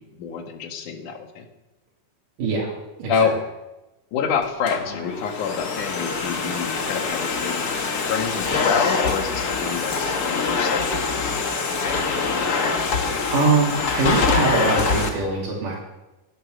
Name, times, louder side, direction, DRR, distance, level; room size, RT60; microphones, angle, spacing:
voice 1, 0.0-1.5 3.1-3.4 4.1-11.3 11.8-12.7, left 6 dB, 75° left, 5 dB, 2.9 m, -28 dB
voice 2, 2.4-2.7 3.0-3.3 13.3-15.8, right 3 dB, 80° right, -4 dB, 3.9 m, -22 dB
Domestic sounds home sounds, 4.4-15.1, left 4 dB, 45° left, 1.2 m, -24 dB
17.0 x 10.0 x 6.3 m, 1.0 s
omnidirectional pair, 3.7 m